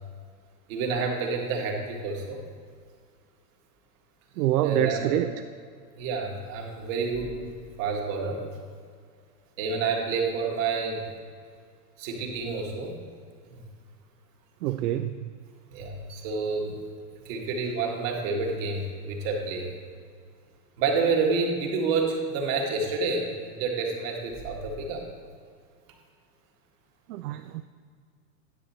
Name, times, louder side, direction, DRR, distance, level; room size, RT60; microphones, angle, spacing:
voice 1, 0.7-2.4 4.6-5.2 6.0-7.3 7.8-8.4 9.6-11.0 12.0-12.9 15.7-16.8 17.1-19.7 20.8-25.0, right 4 dB, 50° right, 0 dB, 1.9 m, -29 dB
voice 2, 4.4-5.3 14.6-15.2 27.1-27.6, right 13 dB, 75° right, 9 dB, 0.5 m, -26 dB
10.5 x 6.8 x 4.2 m, 2.1 s
supercardioid pair, 145°, 48 cm